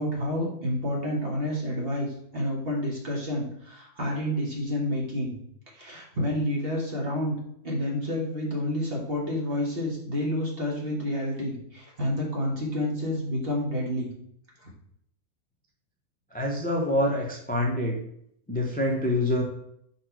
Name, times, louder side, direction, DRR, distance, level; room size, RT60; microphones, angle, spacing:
voice 1, 0.0-5.4 5.7-7.4 7.6-14.1 14.6-14.7, left 1 dB, 40° right, -3 dB, 1.8 m, -29 dB
voice 2, 16.3-18.0 18.5-19.4, left 1 dB, 10° left, -2 dB, 0.6 m, -26 dB
5.0 x 4.3 x 4.5 m, 0.72 s
omnidirectional pair, 1.6 m